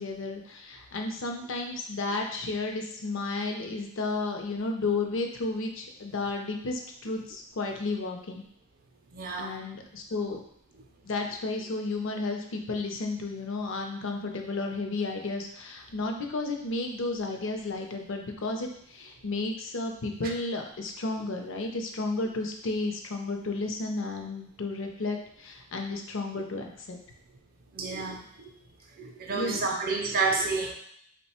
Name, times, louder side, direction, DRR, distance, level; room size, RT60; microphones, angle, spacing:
voice 1, 0.0-8.4 9.4-10.4 11.0-27.0 29.3-29.6, left 3 dB, 60° left, 3 dB, 0.5 m, -32 dB
voice 2, 9.1-9.6 20.2-20.3 26.3-26.4 27.7-28.5 29.0-30.7, right 4 dB, 40° right, 2 dB, 0.4 m, -30 dB
3.1 x 2.2 x 4.2 m, 0.67 s
head